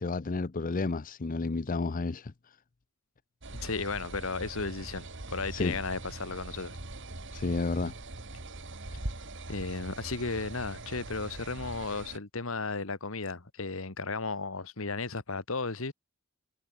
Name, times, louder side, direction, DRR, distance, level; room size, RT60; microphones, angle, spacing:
voice 1, 0.0-2.6 5.5-5.8 7.3-7.9, left 3 dB, 40° left, 0.6 m, -31 dB
sound 1, 3.4-12.2, right 2 dB, 60° right, 2.5 m, -42 dB
voice 2, 3.5-6.8 9.5-15.9, left 3 dB, 70° left, 1.6 m, -34 dB
head